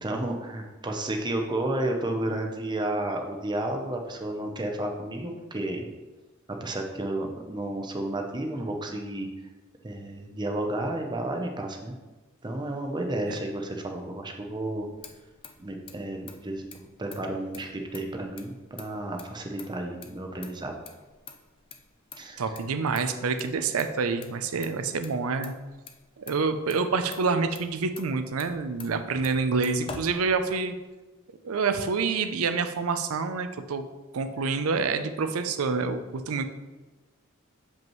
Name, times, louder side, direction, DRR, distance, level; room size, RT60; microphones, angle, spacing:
voice 1, 0.0-5.9 6.6-9.3 9.8-11.9 12.4-14.9 15.6-20.7 22.2-22.5, right 1 dB, 20° right, 3 dB, 0.7 m, -32 dB
Motor vehicle (road), 14.6-30.9, left 4 dB, 25° left, 0.5 m, -48 dB
voice 2, 22.4-25.5 26.2-30.7 31.4-33.9 34.1-36.5, right 4 dB, 90° right, 9 dB, 0.5 m, -27 dB
7.2 x 5.2 x 3.1 m, 1.2 s
head